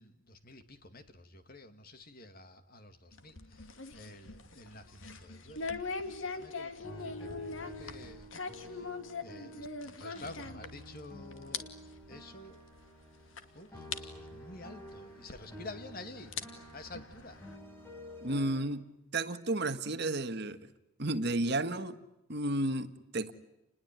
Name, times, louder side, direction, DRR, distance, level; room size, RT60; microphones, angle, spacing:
voice 1, 0.0-5.7 6.0-8.9 9.2-11.7 12.1-12.6 13.5-16.4 16.7-17.4, left 2 dB, 45° left, 2.5 m, -50 dB
sound 1, 3.1-11.1 11.3-11.6 11.9-12.1 12.8-12.9 13.4-13.5 13.9-14.0 15.4-15.5 16.1-17.6, left 4 dB, 65° left, 2.5 m, -41 dB
sound 2, 6.8-9.9 10.1-18.6, left 1 dB, 10° left, 6.4 m, -49 dB
voice 2, 18.2-18.8 19.1-20.7 21.0-22.0 22.3-23.3, right 2 dB, 50° right, 1.5 m, -32 dB
30.0 x 21.0 x 9.3 m
head